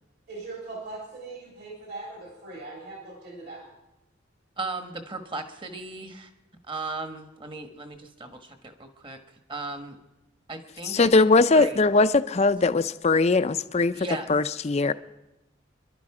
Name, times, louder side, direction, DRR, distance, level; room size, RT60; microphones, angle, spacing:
voice 1, 0.3-3.7, right 3 dB, 55° right, -2 dB, 3.5 m, -40 dB
voice 2, 4.6-6.3 6.7-9.2 9.5-10.0 10.5-11.3 11.5-11.8 13.9-14.3, right 3 dB, 25° right, 7 dB, 1.3 m, -36 dB
voice 3, 10.8-14.9, left 3 dB, 35° left, 12 dB, 0.5 m, -21 dB
25.5 x 11.5 x 4.9 m, 1.0 s
head